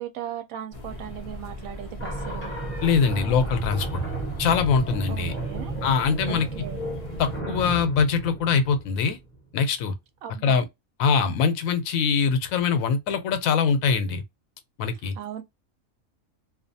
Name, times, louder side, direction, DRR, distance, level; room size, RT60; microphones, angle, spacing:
voice 1, 0.0-2.5 5.1-5.7 6.3-6.9 10.2-10.6 14.9-15.4, right 10 dB, 85° right, 1.1 m, -37 dB
sound 1, 0.7-7.4, left 1 dB, 45° left, 0.4 m, -39 dB
sound 2, 2.0-9.4, right 2 dB, 10° left, 0.7 m, -33 dB
voice 2, 2.8-4.0 4.4-5.3 5.8-6.5 7.2-9.2 9.5-9.9 10.4-10.6 11.0-14.2 14.8-15.1, left 5 dB, 80° left, 1.0 m, -23 dB
2.5 x 2.3 x 2.6 m
omnidirectional pair, 1.4 m